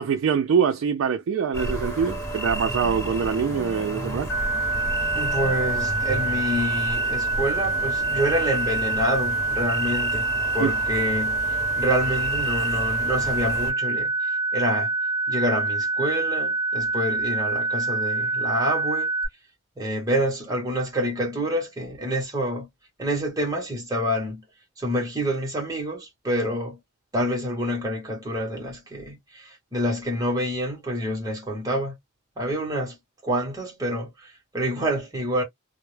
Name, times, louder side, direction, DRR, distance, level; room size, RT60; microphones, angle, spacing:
voice 1, 0.0-4.3 10.6-10.7, right 6 dB, 80° right, 0.3 m, -24 dB
sound 1, 1.5-13.7, right 1 dB, 15° left, 1.0 m, -33 dB
sound 2, 4.3-19.3, right 2 dB, 70° left, 0.6 m, -26 dB
voice 2, 5.1-10.3 10.5-14.9 15.3-19.1 19.8-22.7 23.0-24.4 24.8-26.8 27.1-31.9 32.4-33.0 33.2-35.4, equal, 20° right, 0.9 m, -27 dB
2.1 x 2.0 x 3.1 m
head